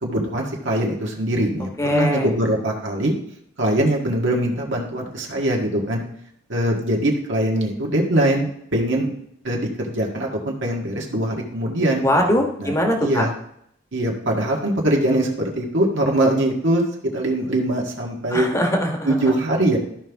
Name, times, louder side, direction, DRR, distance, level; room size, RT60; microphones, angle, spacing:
voice 1, 0.0-3.1 3.6-6.0 6.5-9.1 9.4-12.0 12.6-12.7 13.0-13.3 13.9-16.8 17.1-18.5 19.0-19.8, right 1 dB, 65° right, -1 dB, 1.8 m, -22 dB
voice 2, 1.8-2.3 12.0-13.2 18.3-19.3, equal, 15° left, 2 dB, 1.4 m, -21 dB
13.5 x 5.5 x 3.6 m, 0.72 s
head